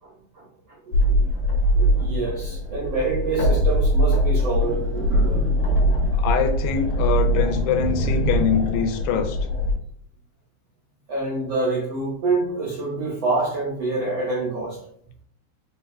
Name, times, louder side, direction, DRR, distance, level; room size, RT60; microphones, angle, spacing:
voice 1, 0.0-6.2 7.1-7.2 11.1-14.8, right 3 dB, 85° right, -5 dB, 1.3 m, -27 dB
sound 1, 0.9-9.7, equal, 60° left, 2.3 m, -22 dB
voice 2, 6.1-9.4, left 7 dB, 85° left, 7 dB, 2.6 m, -24 dB
6.1 x 3.3 x 2.3 m, 0.63 s
omnidirectional pair, 4.7 m